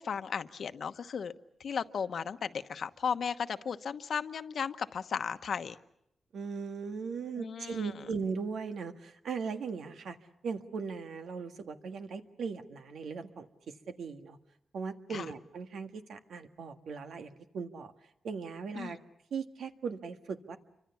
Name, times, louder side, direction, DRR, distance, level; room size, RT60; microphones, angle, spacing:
voice 1, 0.0-1.3 1.6-5.8 7.4-7.9 15.1-15.3 18.7-18.9, left 6 dB, 70° left, 10 dB, 1.1 m, -35 dB
voice 2, 6.3-10.2 10.4-14.4 14.7-17.9 18.2-19.0 19.3-20.6, right 5 dB, 85° right, 6 dB, 1.7 m, -38 dB
28.5 x 25.0 x 7.1 m, 0.80 s
cardioid pair, 95°, 0 cm